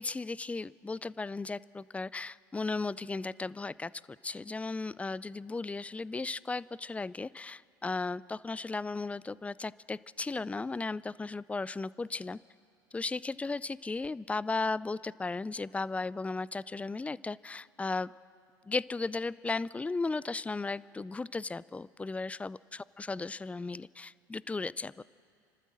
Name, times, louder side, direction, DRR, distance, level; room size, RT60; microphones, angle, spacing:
voice 1, 0.0-3.9 4.2-12.4 12.9-18.1 18.7-22.6 23.0-25.0, left 3 dB, 10° left, 20 dB, 0.4 m, -35 dB
29.5 x 13.0 x 7.5 m, 2.4 s
hypercardioid pair, 70°, 11 cm